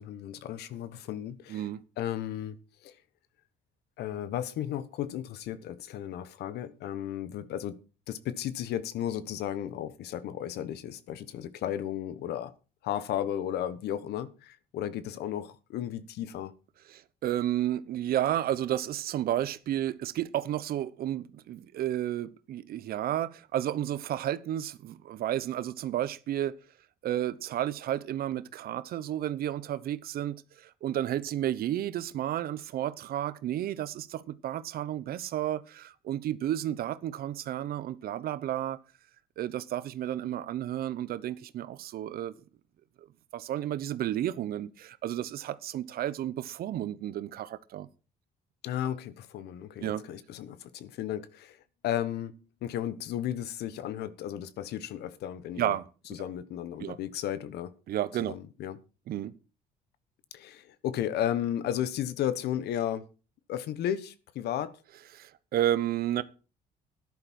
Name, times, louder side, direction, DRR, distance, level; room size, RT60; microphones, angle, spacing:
voice 1, 0.0-1.7 2.0-2.6 2.8-2.9 4.0-7.8 8.1-12.5 12.8-16.5 48.6-51.6 51.8-52.3 52.6-55.8 56.1-57.7 58.2-58.8 60.3-63.0 63.5-64.8, left 11 dB, 75° left, 1.2 m, -34 dB
voice 2, 1.5-1.8 16.9-26.5 27.0-38.8 39.4-42.3 43.0-43.1 43.3-47.9 49.8-50.0 55.6-55.9 56.8-57.0 57.9-58.3 59.1-59.3 65.1-66.2, right 12 dB, 65° right, 0.9 m, -32 dB
13.0 x 11.0 x 4.4 m
cardioid pair, 110°, 17 cm